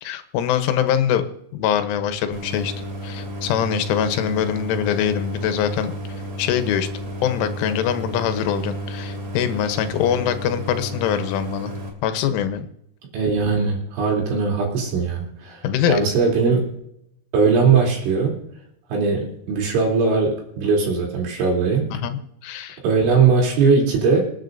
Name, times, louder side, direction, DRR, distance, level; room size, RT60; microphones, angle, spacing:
voice 1, 0.0-1.2 1.5-2.7 3.0-5.9 6.4-6.9 7.2-11.8 12.0-12.7 15.6-16.0 21.9-22.8, left 9 dB, 85° left, 9 dB, 3.5 m, -23 dB
Idling, 2.3-11.9, equal, 45° right, 3.4 m, -32 dB
voice 2, 13.1-15.6 15.9-16.7 17.3-18.4 18.9-21.9 22.8-24.2, right 5 dB, 75° right, -2 dB, 5.7 m, -19 dB
27.0 x 9.5 x 2.6 m, 0.76 s
omnidirectional pair, 5.5 m